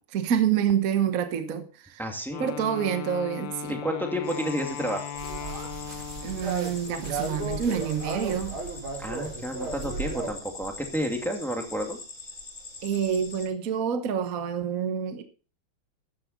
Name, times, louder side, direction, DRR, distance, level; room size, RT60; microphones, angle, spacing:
voice 1, 0.1-2.0 2.4-3.8 6.2-8.5 12.8-15.2, right 8 dB, 50° right, 1.4 m, -27 dB
voice 2, 2.0-2.5 3.7-5.0 9.0-12.0, equal, ahead, 2.0 m, -31 dB
Wind instrument woodwind instrument, 2.3-6.6, left 8 dB, 70° left, 1.6 m, -37 dB
sound 1, 4.2-13.5, left 3 dB, 40° left, 3.1 m, -44 dB
sound 2, 5.2-10.3, right 3 dB, 80° right, 4.0 m, -34 dB
13.5 x 9.7 x 4.1 m
omnidirectional pair, 2.2 m